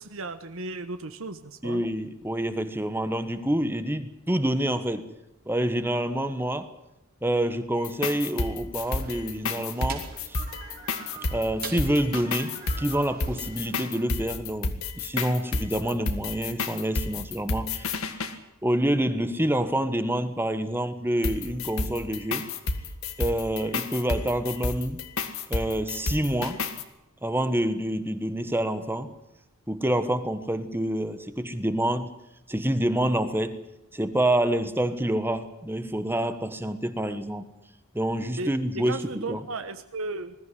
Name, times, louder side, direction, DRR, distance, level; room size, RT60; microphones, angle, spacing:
voice 1, 0.0-1.8 38.4-40.3, right 3 dB, 60° right, 9 dB, 1.2 m, -35 dB
voice 2, 1.6-5.1 5.5-6.7 7.2-10.4 11.3-18.1 18.6-22.5 23.2-25.0 25.5-26.7 27.2-29.2 29.7-32.1 32.5-33.6 33.9-37.4 37.9-39.4, right 1 dB, 10° right, 10 dB, 1.3 m, -27 dB
sound 1, 7.8-18.3 21.2-26.8, left 3 dB, 65° left, 1.9 m, -31 dB
sound 2, 8.8-14.0, right 5 dB, 40° right, 3.6 m, -43 dB
21.0 x 14.5 x 9.9 m, 0.87 s
head